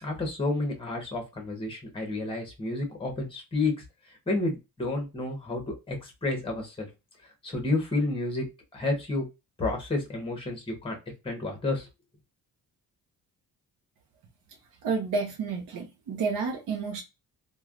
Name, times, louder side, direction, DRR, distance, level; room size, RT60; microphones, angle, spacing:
voice 1, 0.0-3.7 4.1-6.9 7.2-8.4 8.7-9.3 9.6-11.0 11.2-11.9, left 2 dB, 15° left, 1.0 m, -30 dB
voice 2, 14.8-17.0, right 4 dB, 60° right, 0.7 m, -30 dB
3.2 x 2.3 x 2.4 m
cardioid pair, 160°, 37 cm